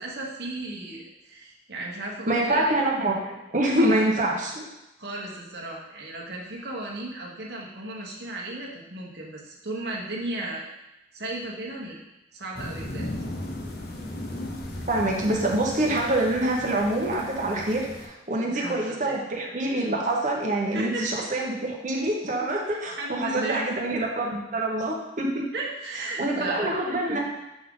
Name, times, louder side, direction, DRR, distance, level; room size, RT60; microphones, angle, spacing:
voice 1, 0.0-2.7 3.8-4.1 5.0-10.7 11.1-12.0 12.3-13.1 18.5-19.2 20.7-21.1 22.7-23.8 25.5-27.3, right 2 dB, 65° right, -3 dB, 1.2 m, -35 dB
voice 2, 2.3-4.6 14.9-25.4 26.2-27.3, right 1 dB, 45° right, -1 dB, 1.1 m, -26 dB
sound 1, 12.5-18.1, left 1 dB, 60° left, 0.8 m, -36 dB
7.5 x 3.6 x 3.8 m, 0.96 s
head